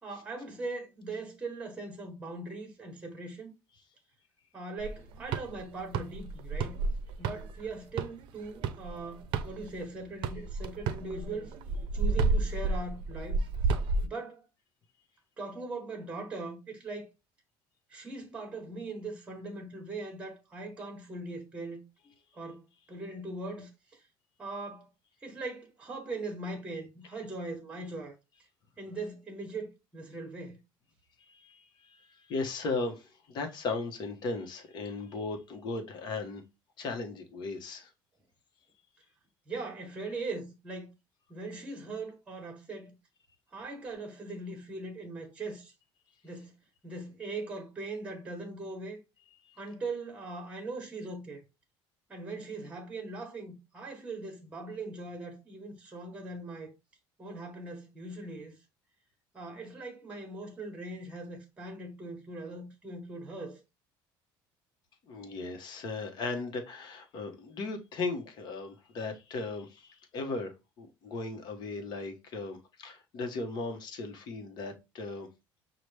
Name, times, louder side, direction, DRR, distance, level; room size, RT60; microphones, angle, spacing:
voice 1, 0.0-3.5 4.5-6.8 7.2-11.5 11.9-13.5 14.0-14.4 15.4-17.1 17.9-24.0 24.4-24.9 25.2-28.1 28.8-30.6 39.5-40.9 41.3-43.0 43.5-45.7 46.2-46.5 46.8-49.0 49.6-51.4 52.1-56.7 57.2-58.6 59.3-63.6, right 2 dB, 10° right, 1.3 m, -40 dB
sound 1, 4.8-9.9 10.2-14.1, right 3 dB, 60° right, 0.6 m, -31 dB
voice 2, 31.2-36.4 36.8-37.9 49.5-49.6 65.0-75.3, left 3 dB, 50° left, 1.1 m, -37 dB
5.9 x 2.4 x 3.3 m
cardioid pair, 140°, 9 cm